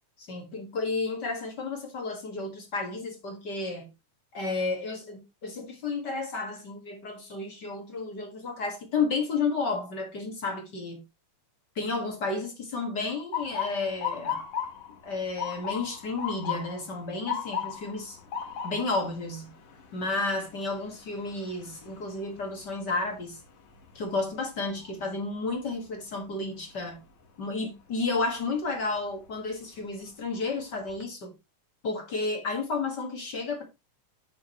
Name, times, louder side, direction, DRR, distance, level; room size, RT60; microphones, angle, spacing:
voice 1, 0.2-3.9 4.3-11.0 11.8-14.4 15.0-18.2 18.6-19.5 19.9-23.4 24.0-27.0 27.4-31.3 31.8-33.6, left 3 dB, 40° left, 2.0 m, -32 dB
Motor vehicle (road) / Siren, 13.3-25.2 25.7-26.1 26.9-27.2 29.1-29.3 29.8-29.9 30.3-31.0, left 7 dB, 80° left, 3.3 m, -37 dB
11.0 x 6.1 x 3.1 m
omnidirectional pair, 3.6 m